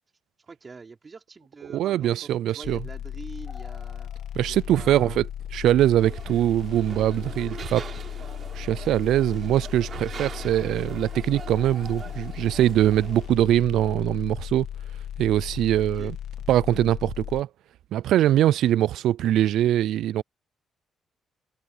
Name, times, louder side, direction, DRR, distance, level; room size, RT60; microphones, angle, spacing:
voice 1, 0.4-2.3 2.6-4.1 4.5-5.2 15.9-16.1, right 4 dB, 35° right, 3.9 m, -44 dB
voice 2, 1.7-2.8 4.3-5.3 5.5-7.9 8.5-14.7 15.2-16.2 16.5-17.5 17.9-20.2, right 12 dB, 80° right, 0.4 m, -22 dB
sound 1, 2.6-17.4, left 10 dB, 75° left, 1.6 m, -36 dB
sound 2, 3.5-5.1 5.4-5.5 6.0-6.1 6.8-6.9 8.0-9.1 9.4-9.7 10.1-10.2 10.5-10.6 10.8-10.9 11.3-14.3 14.6-14.9, left 4 dB, 30° left, 2.6 m, -51 dB
sound 3, 6.0-13.3, right 7 dB, 50° right, 5.0 m, -42 dB
cardioid pair, 90°, 0 cm